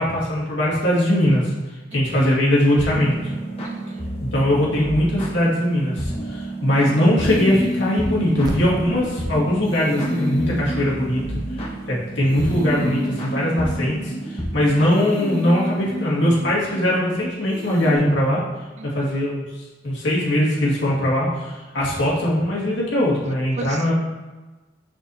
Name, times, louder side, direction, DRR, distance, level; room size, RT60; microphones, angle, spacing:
voice 1, 0.0-1.5 1.9-3.3 4.2-11.4 11.9-18.4 18.8-23.9, left 1 dB, 70° left, -6 dB, 2.0 m, -21 dB
sound 1, 2.8-15.6, right 1 dB, 30° left, 1.4 m, -31 dB
voice 2, 3.6-4.1 18.8-19.1 23.6-23.9, right 4 dB, 40° right, 9 dB, 0.3 m, -36 dB
sound 2, 7.2-9.3 9.6-11.9 12.2-14.5 14.9-17.1 17.5-18.0, equal, 90° right, 2.0 m, -31 dB
sound 3, 8.4-13.0, equal, 20° right, 0.8 m, -36 dB
7.0 x 6.6 x 2.7 m, 1.2 s
head